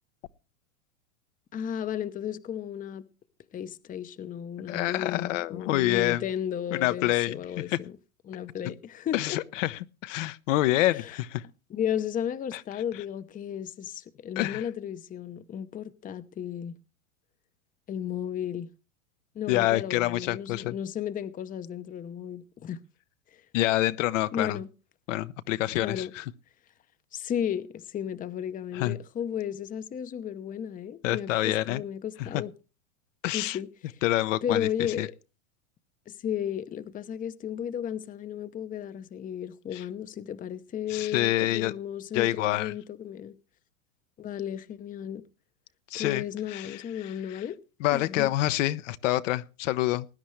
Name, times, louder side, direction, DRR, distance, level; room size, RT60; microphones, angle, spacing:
voice 1, 1.5-3.1 3.5-8.0 8.3-9.4 10.9-11.2 11.7-16.8 17.9-18.7 19.3-22.8 23.3-23.4 24.3-24.7 25.8-26.1 27.1-32.5 33.3-34.0 34.4-35.1 36.1-43.4 44.2-45.2 46.0-47.6 47.9-48.3, left 9 dB, 20° left, 0.8 m, -34 dB
voice 2, 4.7-6.2 6.7-7.8 9.1-11.4 12.5-12.6 14.4-14.6 19.5-20.8 23.5-24.6 25.1-26.2 28.7-29.0 31.0-31.8 32.3-32.4 33.2-33.6 34.0-34.7 35.0-35.1 39.7-39.8 40.9-41.7 42.1-42.7 45.9-46.2 46.5-46.8 47.8-50.1, left 16 dB, 65° left, 0.9 m, -27 dB
19.5 x 10.0 x 3.2 m
hypercardioid pair, 110°, 41 cm